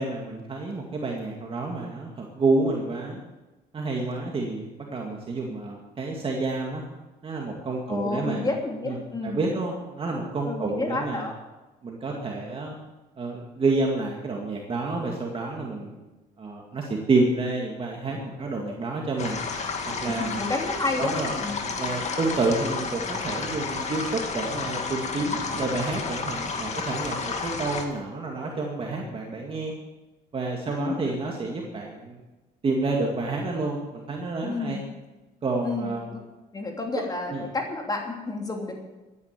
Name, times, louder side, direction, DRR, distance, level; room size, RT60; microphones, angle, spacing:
voice 1, 0.0-3.2 3.7-6.8 7.2-8.5 8.8-9.0 9.2-11.3 11.8-12.8 13.2-15.9 16.4-19.4 19.9-20.4 21.0-21.3 21.8-29.7 30.3-32.2 32.6-34.8 35.4-36.0 37.3-37.4, right 3 dB, 35° right, 0 dB, 2.2 m, -29 dB
voice 2, 7.9-9.4 10.4-11.3 18.4-18.6 20.1-21.5 30.7-30.9 34.4-34.9 35.6-36.2 36.5-38.7, left 3 dB, 20° left, 2 dB, 2.9 m, -30 dB
sound 1, 19.2-27.8, left 4 dB, 40° left, 2.2 m, -31 dB
14.5 x 10.0 x 7.5 m, 1.1 s
cardioid pair, 110°, 17 cm